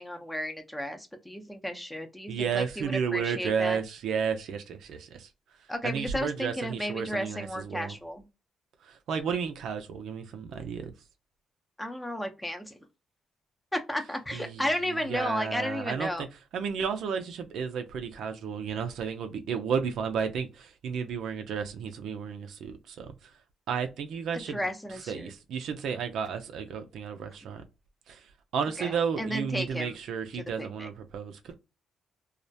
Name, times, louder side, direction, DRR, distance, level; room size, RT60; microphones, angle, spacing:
voice 1, 0.0-3.8 5.7-8.2 11.8-12.8 13.7-16.2 24.5-25.3 28.8-29.9 30.6-30.9, equal, 10° left, 0.6 m, -33 dB
voice 2, 2.3-5.3 5.8-8.0 8.8-10.9 14.3-14.6 14.9-16.3 16.5-23.1 23.7-24.7 25.1-27.6 28.1-28.2 28.5-31.5, right 6 dB, 75° right, 0.4 m, -32 dB
2.3 x 2.1 x 2.6 m
cardioid pair, 90°, 0 cm